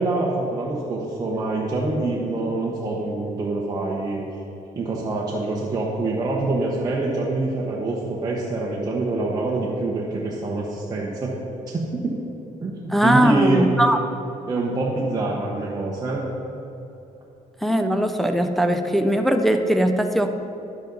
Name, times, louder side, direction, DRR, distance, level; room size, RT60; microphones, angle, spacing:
voice 1, 0.0-4.3 4.7-11.3 11.7-11.8 12.6-13.8 14.5-16.3, right 2 dB, 25° right, -4 dB, 1.0 m, -25 dB
voice 2, 12.9-14.0 17.6-20.3, equal, ahead, 5 dB, 0.4 m, -20 dB
10.5 x 8.2 x 3.9 m, 2.9 s
cardioid pair, 140°, 14 cm